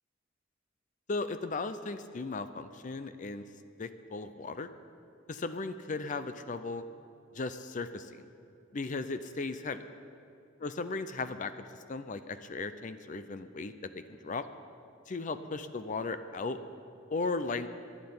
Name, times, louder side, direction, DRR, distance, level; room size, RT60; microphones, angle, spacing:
voice 1, 1.1-3.4 3.8-4.7 5.3-6.8 7.3-8.3 8.7-9.8 10.6-11.5 11.9-14.5 15.1-16.6 17.1-17.7, left 3 dB, 40° left, 11 dB, 0.5 m, -36 dB
12.0 x 11.0 x 9.4 m, 2.6 s
head